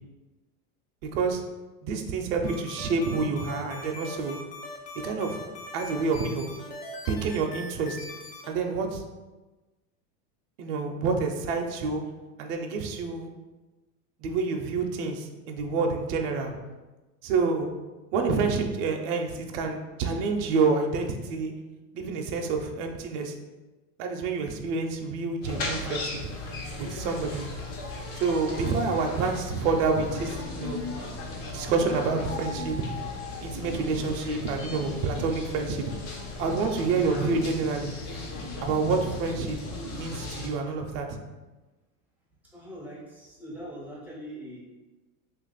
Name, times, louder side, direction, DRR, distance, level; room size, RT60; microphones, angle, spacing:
voice 1, 1.1-1.4 1.8-4.3 5.0-5.4 5.7-6.5 7.1-8.0 8.5-9.0 10.6-12.0 12.4-13.3 14.2-16.6 17.2-17.7 18.1-21.5 21.9-23.3 24.0-26.2 26.8-27.5 28.1-30.8 31.5-32.8 33.4-35.9 36.4-37.9 38.6-39.6 39.9-41.2, right 4 dB, 55° right, 3 dB, 0.5 m, -28 dB
sound 1, 2.5-8.5, left 2 dB, 50° left, 0.7 m, -41 dB
sound 2, 25.4-40.5, left 2 dB, 75° left, 1.0 m, -36 dB
voice 2, 42.4-44.6, equal, 5° right, -6 dB, 0.3 m, -42 dB
2.9 x 2.5 x 3.8 m, 1.2 s
supercardioid pair, 140°, 45 cm